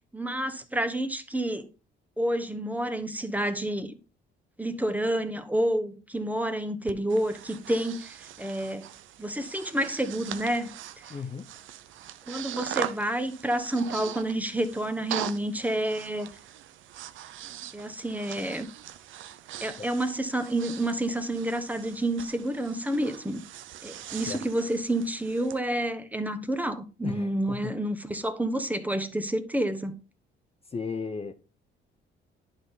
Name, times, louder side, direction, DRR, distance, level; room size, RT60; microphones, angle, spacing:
voice 1, 0.1-1.7 2.2-3.9 4.6-8.9 9.2-11.1 12.3-16.3 17.7-18.7 19.6-23.4 23.8-29.9, right 1 dB, 10° right, 1.0 m, -29 dB
Breathing, 6.9-25.6, right 12 dB, 80° right, 0.6 m, -41 dB
voice 2, 11.1-11.5 19.8-19.9 24.1-24.4 27.0-27.8 30.7-31.3, left 5 dB, 30° left, 0.7 m, -36 dB
11.0 x 3.8 x 4.0 m
cardioid pair, 90°, 20 cm